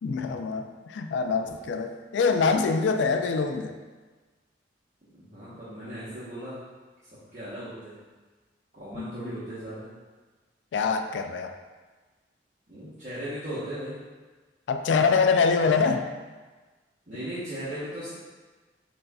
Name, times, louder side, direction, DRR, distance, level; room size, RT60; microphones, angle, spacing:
voice 1, 0.0-3.8 8.9-9.1 10.7-11.5 14.7-16.1, left 5 dB, 75° left, 6 dB, 0.3 m, -24 dB
voice 2, 5.2-6.6 7.3-8.0 8.7-9.9 12.7-13.9 17.1-18.1, right 1 dB, 40° right, -12 dB, 1.0 m, -37 dB
7.4 x 2.7 x 2.3 m, 1.3 s
head